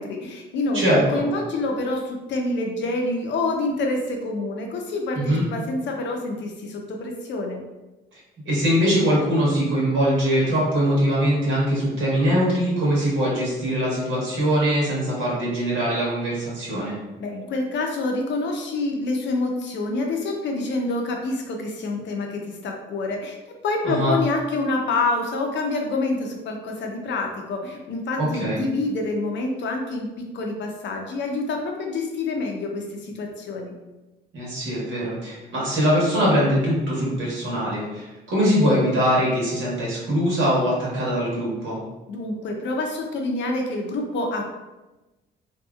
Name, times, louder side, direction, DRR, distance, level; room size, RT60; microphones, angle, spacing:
voice 1, 0.0-7.6 17.2-23.4 23.6-33.7 42.1-44.5, left 2 dB, 65° left, 2 dB, 0.6 m, -27 dB
voice 2, 0.7-1.3 5.2-5.5 8.4-17.0 23.8-24.2 28.2-28.6 34.3-41.8, equal, 75° right, -5 dB, 1.3 m, -22 dB
2.7 x 2.6 x 2.3 m, 1.1 s
cardioid pair, 90°, 20 cm